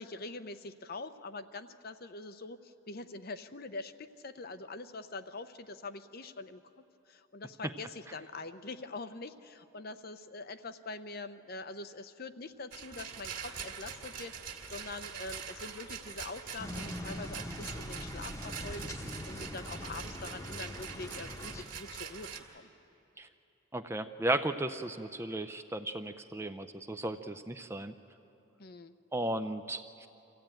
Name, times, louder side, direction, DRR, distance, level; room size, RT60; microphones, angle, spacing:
voice 1, 0.0-6.6 7.1-14.3 14.6-19.0 19.3-22.7 28.6-29.0, left 3 dB, 45° left, 10 dB, 0.7 m, -44 dB
Rattle, 12.7-22.4, right 6 dB, 45° right, 1.9 m, -44 dB
sound 1, 16.6-21.6, left 1 dB, 15° left, 1.0 m, -42 dB
voice 2, 23.7-27.9 29.1-30.1, right 1 dB, 10° right, 9 dB, 0.4 m, -35 dB
25.0 x 15.5 x 9.0 m, 2.9 s
head